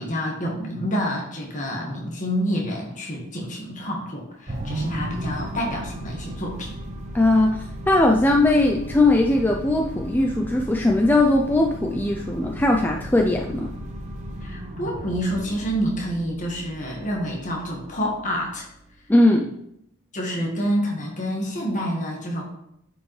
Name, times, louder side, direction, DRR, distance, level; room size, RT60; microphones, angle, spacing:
voice 1, 0.0-6.7 14.4-18.6 20.1-22.5, equal, 35° left, -1 dB, 1.6 m, -28 dB
sound 1, 4.5-19.0, right 1 dB, 30° right, 0.9 m, -35 dB
voice 2, 7.1-13.7 19.1-19.5, left 2 dB, 10° left, 1 dB, 0.4 m, -19 dB
10.0 x 5.2 x 3.2 m, 0.78 s
head